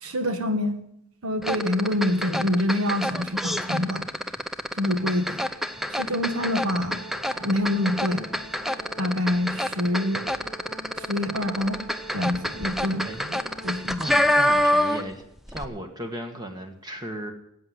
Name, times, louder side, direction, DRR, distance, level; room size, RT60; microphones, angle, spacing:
voice 1, 0.0-0.8 1.2-4.1 4.7-5.4 5.9-7.0 7.4-8.3 9.0-10.2 11.0-11.8 12.1-14.0, left 1 dB, 90° right, 7 dB, 1.8 m, -26 dB
sound 1, 1.4-15.2 15.5-15.6, equal, ahead, 0.6 m, -27 dB
sound 2, 4.8-13.8, right 1 dB, 55° right, 4.9 m, -44 dB
voice 2, 14.0-15.2 15.5-17.3, right 1 dB, 20° right, 5 dB, 1.4 m, -36 dB
14.0 x 8.6 x 9.5 m, 0.77 s
head